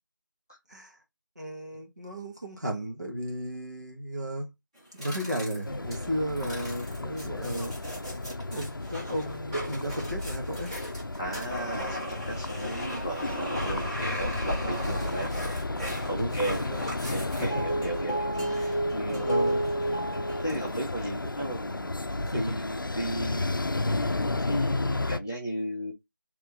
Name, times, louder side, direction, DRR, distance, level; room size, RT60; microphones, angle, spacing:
voice 1, 1.4-4.5 4.9-7.8 8.5-10.8 12.6-12.8 14.6-15.3 16.1-16.8 17.3-17.9 18.4-18.7 19.1-19.7 21.5-21.6 22.2-22.5, equal, 55° right, 1.6 m, -34 dB
sound 1, 4.7-20.8, right 1 dB, 15° right, 1.8 m, -34 dB
sound 2, 5.6-25.2, left 2 dB, 80° left, 0.5 m, -33 dB
voice 2, 11.2-15.3 16.1-16.7 17.1-19.2 20.4-23.5 23.9-25.9, right 1 dB, 10° left, 0.7 m, -35 dB
3.6 x 3.3 x 3.4 m
figure-of-eight pair, 175°, 11 cm